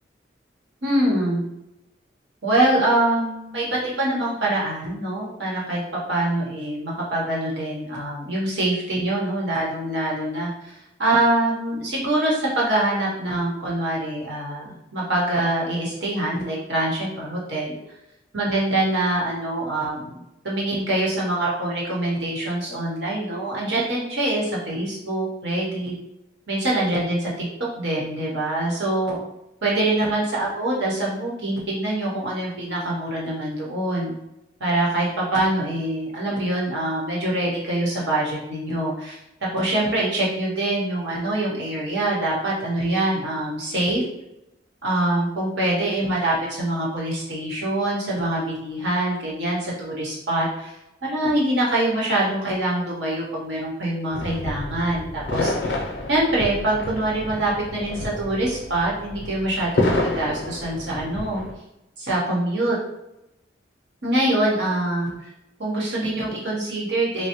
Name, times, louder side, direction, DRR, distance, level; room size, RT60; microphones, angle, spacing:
voice 1, 0.8-1.4 2.4-5.8 6.1-10.7 11.0-17.8 18.3-25.9 26.5-27.5 27.8-29.2 29.6-34.1 34.6-39.2 39.5-44.0 44.8-50.7 51.0-61.4 62.0-62.8 64.0-65.1 65.6-67.3, right 1 dB, 75° right, -4 dB, 1.0 m, -24 dB
sound 1, 54.1-61.5, left 2 dB, 75° left, 0.6 m, -29 dB
3.2 x 2.1 x 2.9 m, 0.90 s
head